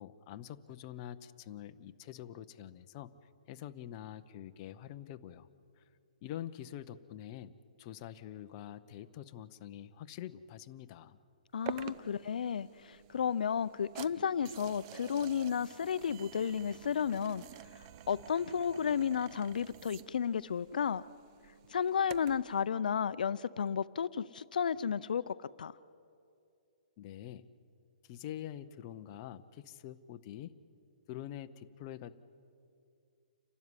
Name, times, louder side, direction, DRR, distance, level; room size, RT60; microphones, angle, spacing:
voice 1, 0.0-3.1 3.5-5.5 5.8-5.9 6.2-7.5 7.8-11.2 27.0-27.5 28.0-30.5 31.1-32.2, left 11 dB, 25° left, 9 dB, 0.7 m, -46 dB
voice 2, 11.5-17.4 18.1-21.0 21.7-25.8, left 7 dB, 70° left, 16 dB, 0.5 m, -33 dB
sound 1, 11.7-22.5, right 11 dB, 25° right, 0.6 m, -49 dB
29.0 x 12.5 x 9.7 m, 2.5 s
hypercardioid pair, 165°, 5 cm